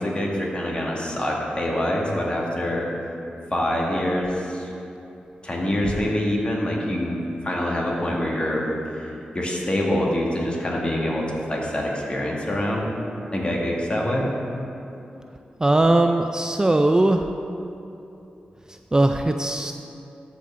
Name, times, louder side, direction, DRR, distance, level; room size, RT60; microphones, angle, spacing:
voice 1, 0.0-2.9 3.5-4.7 5.4-8.6 8.9-12.9 13.3-14.3, left 1 dB, 35° left, -2 dB, 1.9 m, -25 dB
voice 2, 15.6-17.3 18.9-19.7, right 2 dB, 20° right, 6 dB, 0.4 m, -19 dB
13.5 x 5.6 x 3.7 m, 2.8 s
cardioid pair, 60°, 3 cm